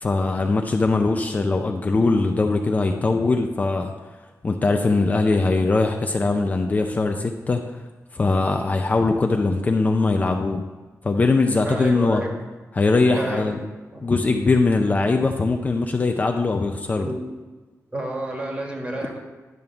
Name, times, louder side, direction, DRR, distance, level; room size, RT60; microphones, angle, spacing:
voice 1, 0.0-3.9 4.4-7.6 8.1-10.6 11.0-12.2 12.7-13.6 14.0-17.1, left 3 dB, 30° left, 3 dB, 0.5 m, -21 dB
voice 2, 11.6-12.4 13.1-13.6 13.9-14.0 17.0-17.2 17.9-19.2, right 1 dB, 20° right, 0 dB, 1.6 m, -29 dB
10.5 x 3.6 x 6.9 m, 1.3 s
wide cardioid pair, 155°, 6 cm